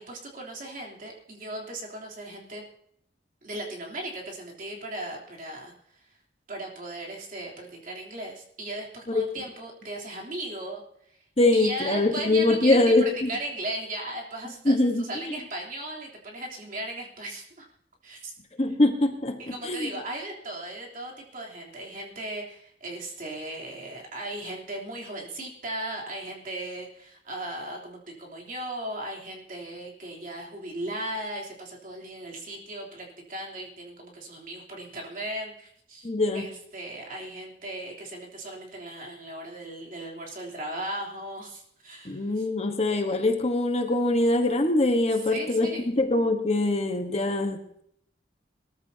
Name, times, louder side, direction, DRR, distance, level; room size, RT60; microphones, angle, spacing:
voice 1, 0.0-2.7 3.4-5.7 6.1-6.2 6.5-10.8 11.1-11.2 11.5-17.6 18.0-18.3 19.4-42.5 45.2-45.9, right 1 dB, 50° right, -2 dB, 3.3 m, -37 dB
voice 2, 11.4-13.3 14.6-15.3 18.6-19.9 36.0-36.5 42.0-47.8, left 2 dB, 35° left, 5 dB, 1.3 m, -23 dB
21.5 x 14.0 x 2.8 m, 0.70 s
head